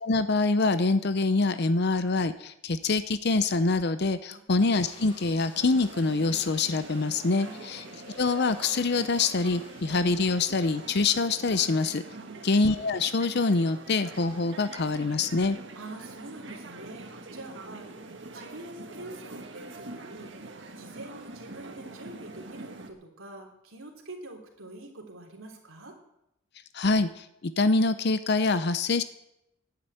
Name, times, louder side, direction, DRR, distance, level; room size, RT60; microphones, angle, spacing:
voice 1, 0.0-7.8 8.2-12.0 12.4-15.6 26.7-29.0, left 3 dB, 55° left, 12 dB, 0.6 m, -25 dB
sound 1, 4.6-11.7 12.1-12.2 12.4-12.5 14.1-14.5, left 1 dB, 25° left, 6.7 m, -52 dB
sound 2, 5.5-22.9, right 2 dB, 60° right, 1.7 m, -44 dB
voice 2, 7.3-7.6 12.1-12.5 15.7-17.9 18.3-20.3 20.8-26.0, right 2 dB, 90° right, 2 dB, 3.4 m, -45 dB
11.5 x 9.7 x 9.1 m, 0.83 s
head